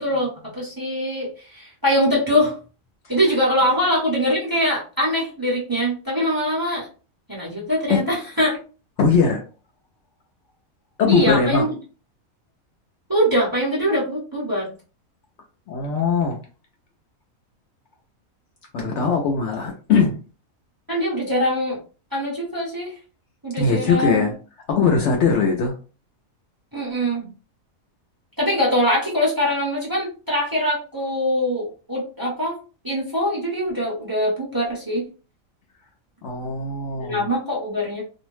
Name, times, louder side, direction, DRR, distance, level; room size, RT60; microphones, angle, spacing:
voice 1, 0.0-2.5 3.1-6.9 7.3-8.6 11.1-11.8 13.1-14.7 20.9-21.8 22.1-22.9 23.4-24.3 26.7-27.3 28.4-32.6 32.8-35.0 37.0-38.0, equal, 20° right, -5 dB, 0.8 m, -23 dB
voice 2, 9.0-9.4 11.0-11.7 15.7-16.4 18.7-20.2 23.6-24.3 24.7-25.7 36.2-37.3, left 5 dB, 65° left, 2 dB, 0.8 m, -20 dB
2.6 x 2.1 x 3.0 m, 0.34 s
omnidirectional pair, 1.5 m